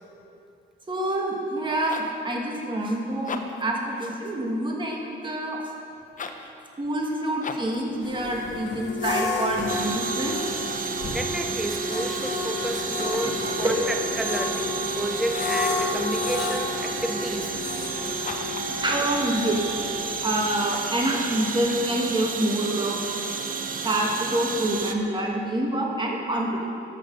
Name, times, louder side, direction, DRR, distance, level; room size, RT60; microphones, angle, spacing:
voice 1, 0.9-5.6 6.8-10.4 13.2-13.8 18.7-19.6 20.2-23.0 23.8-26.7, right 1 dB, 25° right, -1 dB, 1.8 m, -27 dB
Hyacinthe jean pants zipper edited, 1.7-2.2 3.1-3.7 6.1-6.5 7.4-7.8 12.9-13.4 15.3-15.7 18.2-18.7, left 5 dB, 40° left, 0.8 m, -37 dB
sound 1, 8.0-20.5, left 3 dB, 65° left, 2.0 m, -31 dB
sound 2, 9.7-24.9, right 5 dB, 45° right, 0.8 m, -31 dB
voice 2, 10.8-17.5, right 1 dB, ahead, 5 dB, 0.6 m, -32 dB
13.0 x 6.4 x 5.3 m, 2.6 s
cardioid pair, 90°, 20 cm